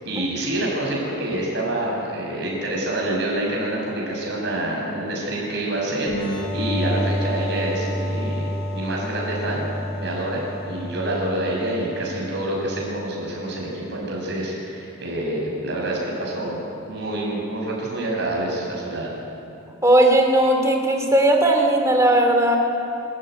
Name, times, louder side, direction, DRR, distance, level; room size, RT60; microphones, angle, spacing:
voice 1, 0.0-9.6 9.9-19.1, right 1 dB, 50° right, -3 dB, 7.3 m, -27 dB
sound 1, 6.1-13.5, equal, 60° left, 7.7 m, -29 dB
voice 2, 19.8-22.6, right 1 dB, 15° right, 2 dB, 2.7 m, -17 dB
27.0 x 14.5 x 9.5 m, 2.7 s
head